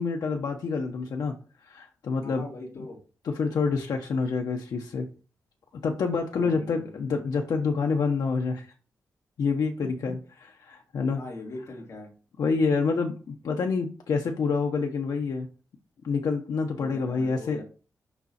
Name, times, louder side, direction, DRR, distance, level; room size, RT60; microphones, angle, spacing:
voice 1, 0.0-1.3 1.7-2.5 3.2-5.1 5.8-8.7 9.4-10.2 10.6-11.2 12.4-15.5 16.0-17.6, left 4 dB, 80° left, 2 dB, 1.0 m, -27 dB
voice 2, 2.2-3.0 6.3-6.9 10.1-10.2 11.1-12.1 16.8-17.6, left 2 dB, 50° left, -1 dB, 2.8 m, -41 dB
6.8 x 5.7 x 4.3 m, 0.36 s
wide cardioid pair, 165°, 6 cm